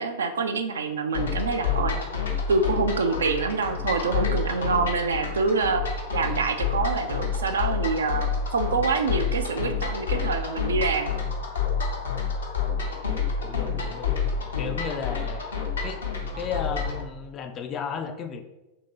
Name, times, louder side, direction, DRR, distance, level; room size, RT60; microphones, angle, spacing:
voice 1, 0.0-2.0 2.5-5.8 6.1-11.1, right 4 dB, 65° right, 7 dB, 0.3 m, -26 dB
sound 1, 1.1-17.0, left 6 dB, 70° left, 0.7 m, -29 dB
voice 2, 13.4-14.2 14.6-15.4 15.8-16.0 16.4-18.4, left 6 dB, 30° left, 6 dB, 0.3 m, -33 dB
2.8 x 2.8 x 3.9 m, 1.0 s
figure-of-eight pair, 90°, 0 cm